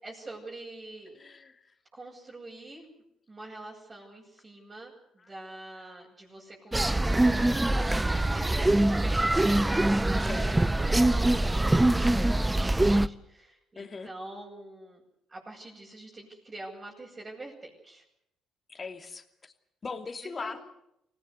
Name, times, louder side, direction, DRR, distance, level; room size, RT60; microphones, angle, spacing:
voice 1, 0.0-1.2 1.9-2.9 3.3-7.9 8.3-9.5 10.2-15.0 15.3-18.0 20.2-20.6, right 2 dB, 30° right, -5 dB, 7.7 m, -45 dB
voice 2, 1.1-1.7 5.2-5.3 5.8-6.1 7.9-8.1 10.2-10.5 13.8-14.1 18.7-19.5 19.8-20.6, left 4 dB, 35° left, 7 dB, 2.8 m, -41 dB
sound 1, 6.7-13.1, right 1 dB, 15° right, 0.9 m, -24 dB
25.0 x 18.0 x 8.3 m, 0.79 s
hypercardioid pair, 50°, 0 cm